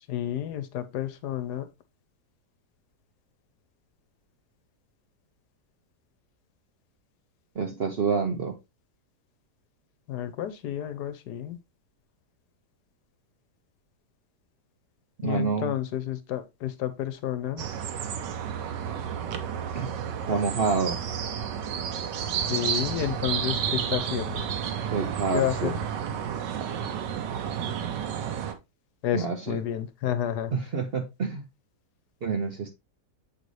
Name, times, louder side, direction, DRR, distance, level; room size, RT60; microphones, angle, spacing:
voice 1, 0.1-1.7 10.1-11.6 15.2-17.6 22.5-24.5 25.3-25.7 29.0-30.5, left 11 dB, 75° left, 1.2 m, -30 dB
voice 2, 7.6-8.5 15.2-15.7 19.7-19.9 20.3-21.0 24.9-25.8 29.1-29.6 30.5-31.4 32.2-32.7, right 5 dB, 50° right, 0.7 m, -28 dB
sound 1, 17.6-28.5, right 8 dB, 85° right, 1.5 m, -31 dB
7.7 x 4.0 x 3.2 m
omnidirectional pair, 1.8 m